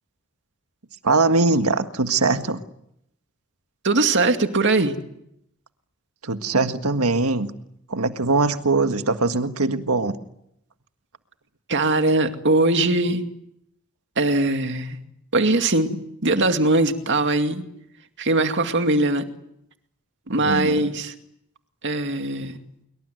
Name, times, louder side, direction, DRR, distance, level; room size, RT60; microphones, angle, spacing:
voice 1, 1.0-2.6 6.2-7.5 7.9-10.2 20.3-20.9, right 3 dB, 90° right, 8 dB, 1.7 m, -21 dB
voice 2, 3.8-5.0 11.7-13.2 14.2-15.0 15.3-17.6 18.2-19.3 20.3-21.1 21.8-22.6, right 2 dB, 55° right, 7 dB, 2.3 m, -21 dB
25.5 x 23.5 x 9.4 m, 0.78 s
head